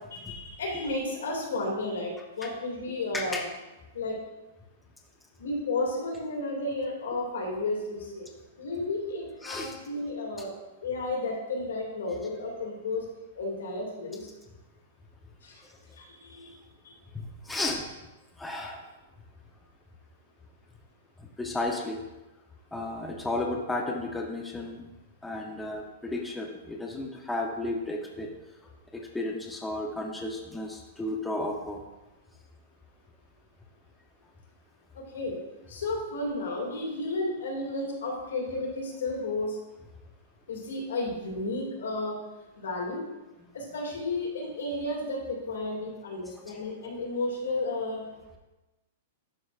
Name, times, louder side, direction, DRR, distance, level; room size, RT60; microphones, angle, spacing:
voice 1, 0.1-3.4 3.9-4.2 5.4-8.3 8.6-10.5 10.8-13.1 13.3-14.3 15.4-15.6 16.0-16.5 16.8-16.9 34.9-35.4 35.7-39.6 40.5-42.2 42.6-43.0 43.5-48.0, left 2 dB, 90° left, -1 dB, 2.1 m, -32 dB
voice 2, 3.1-3.5 9.4-9.8 17.1-17.8 18.4-18.8 21.2-22.0 22.7-24.9 25.2-28.3 28.9-31.8 46.5-46.6, left 2 dB, 5° left, 0 dB, 0.6 m, -33 dB
11.5 x 4.3 x 2.4 m, 1.1 s
hypercardioid pair, 145°, 0 cm